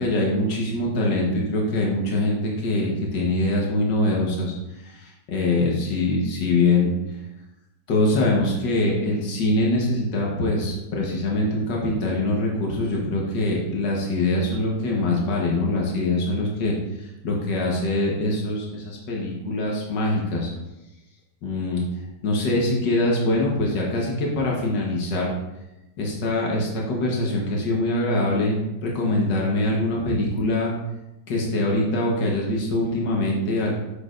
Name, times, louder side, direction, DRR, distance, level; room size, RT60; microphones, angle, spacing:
voice 1, 0.0-6.9 7.9-20.5 21.4-21.9 22.2-25.3 26.0-30.7 31.3-33.7, left 2 dB, 80° left, -2 dB, 1.9 m, -23 dB
8.2 x 6.4 x 2.6 m, 0.96 s
omnidirectional pair, 1.9 m